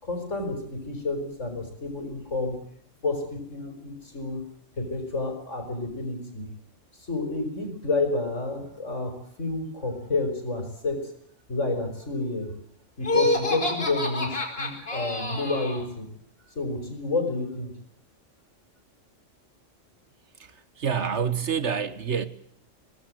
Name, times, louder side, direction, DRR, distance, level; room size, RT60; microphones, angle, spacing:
voice 1, 0.0-2.6 3.0-4.4 4.8-6.5 7.1-11.1 11.5-12.6 13.0-16.1 16.6-17.7, left 3 dB, 70° left, 6.1 m, -30 dB
Laughter, 13.0-15.8, left 2 dB, 50° left, 5.6 m, -27 dB
voice 2, 20.8-22.3, right 7 dB, 65° right, 1.7 m, -27 dB
24.0 x 19.0 x 7.9 m
omnidirectional pair, 1.3 m